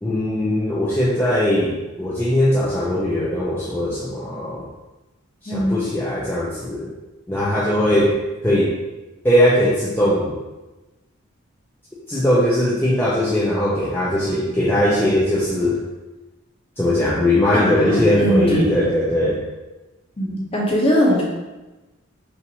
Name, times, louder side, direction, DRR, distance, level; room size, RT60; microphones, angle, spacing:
voice 1, 0.0-4.7 5.4-6.9 7.3-8.2 8.4-8.7 9.2-10.3 12.1-15.8 16.8-19.4, left 1 dB, 10° left, -7 dB, 0.4 m, -20 dB
voice 2, 5.5-5.8 17.5-18.8 20.2-21.2, equal, 25° left, -3 dB, 0.8 m, -20 dB
5.4 x 2.5 x 3.0 m, 1.1 s
head